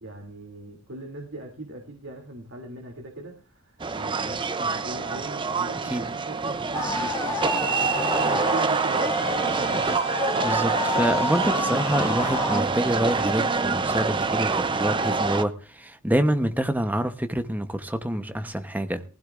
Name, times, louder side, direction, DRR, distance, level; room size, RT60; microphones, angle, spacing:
voice 1, 0.0-7.4 7.9-10.0, right 1 dB, 70° right, 2.8 m, -40 dB
sound 1, 3.8-15.4, right 4 dB, 25° right, 0.6 m, -26 dB
sound 2, 6.7-12.6, left 3 dB, 15° left, 1.8 m, -30 dB
voice 2, 10.4-19.0, right 1 dB, 10° right, 0.9 m, -26 dB
20.0 x 15.5 x 2.5 m
head